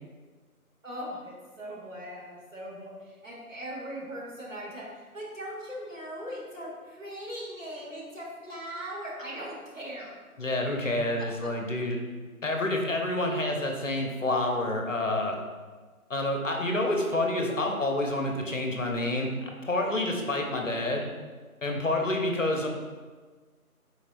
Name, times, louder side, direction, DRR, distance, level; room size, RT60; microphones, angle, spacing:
voice 1, 0.8-10.2 11.2-11.5 20.7-20.9, equal, 60° right, -5 dB, 1.4 m, -40 dB
voice 2, 10.4-12.0 12.4-15.4 16.1-21.1 21.6-22.7, left 1 dB, 60° left, 2 dB, 0.6 m, -28 dB
4.2 x 4.0 x 2.5 m, 1.4 s
figure-of-eight pair, 175°, 44 cm